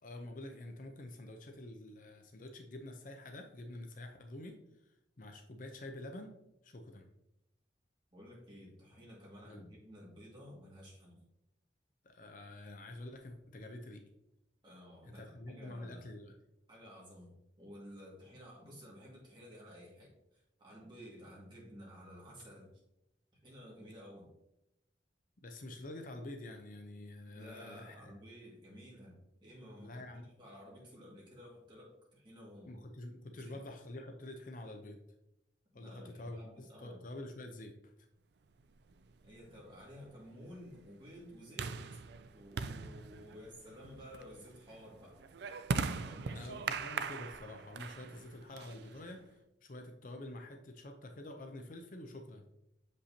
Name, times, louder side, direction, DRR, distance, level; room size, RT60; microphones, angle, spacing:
voice 1, 0.0-6.3 6.6-7.1 9.4-9.6 12.0-14.0 15.0-16.3 25.4-28.1 29.8-30.3 32.6-35.0 35.7-37.9 46.3-52.5, left 1 dB, 45° left, 4 dB, 0.6 m, -47 dB
voice 2, 8.1-11.2 14.6-16.1 16.7-22.7 23.4-24.3 27.3-32.8 33.3-33.6 35.7-37.0 39.2-41.8 42.3-45.2 46.0-46.5, equal, 25° right, -5 dB, 2.0 m, -53 dB
sound 1, 38.9-49.3, right 5 dB, 60° right, 0.3 m, -41 dB
6.7 x 5.2 x 2.8 m, 0.86 s
head